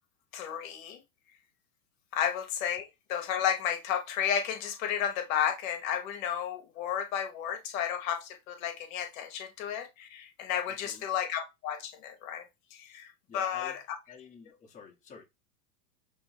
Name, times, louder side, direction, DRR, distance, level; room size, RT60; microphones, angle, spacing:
voice 1, 0.3-1.0 2.1-13.8, left 9 dB, 60° left, 1.1 m, -32 dB
voice 2, 10.7-11.0 13.3-13.8 14.1-15.2, left 5 dB, 15° left, 1.1 m, -50 dB
3.4 x 3.0 x 4.8 m
supercardioid pair, 130°, 46 cm